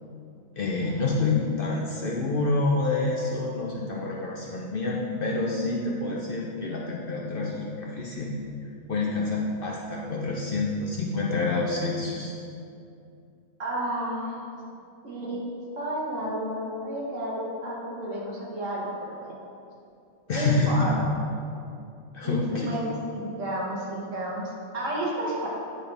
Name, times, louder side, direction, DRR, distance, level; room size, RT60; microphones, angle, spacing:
voice 1, 0.6-8.3 8.9-12.3 20.3-20.9 22.1-22.8, left 3 dB, 55° left, -2 dB, 0.7 m, -27 dB
voice 2, 13.6-14.4 15.0-15.4 15.8-19.3 20.3-21.1 22.2-25.5, right 1 dB, 70° right, -4 dB, 1.7 m, -31 dB
9.1 x 4.3 x 3.3 m, 2.5 s
omnidirectional pair, 1.4 m